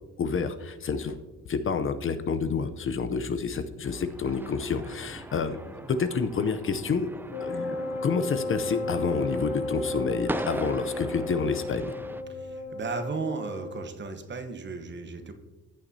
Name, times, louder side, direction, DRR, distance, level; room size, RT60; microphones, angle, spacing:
voice 1, 0.2-1.2 1.5-7.1 7.4-11.9, left 5 dB, 45° left, 10 dB, 0.6 m, -29 dB
sound 1, 3.8-12.2, right 1 dB, 5° right, 0.3 m, -40 dB
sound 2, 4.6-12.6, equal, 70° right, 3.2 m, -52 dB
Wind instrument woodwind instrument, 7.3-13.9, left 2 dB, 80° left, 0.6 m, -34 dB
voice 2, 12.3-15.3, right 4 dB, 35° right, 8 dB, 1.0 m, -35 dB
14.5 x 7.1 x 2.7 m, 1.2 s
cardioid pair, 90°, 30 cm